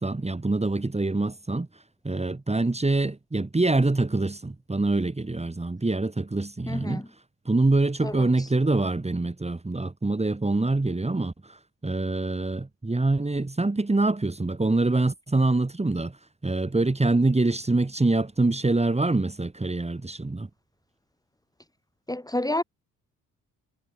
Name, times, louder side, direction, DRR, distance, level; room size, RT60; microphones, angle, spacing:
voice 1, 0.0-1.7 2.0-7.0 7.5-16.2 16.4-20.5, right 2 dB, 15° right, 3.9 m, -25 dB
voice 2, 6.7-7.1 8.0-8.3 22.1-22.6, left 1 dB, 10° left, 4.7 m, -29 dB
figure-of-eight pair, 45°, 42 cm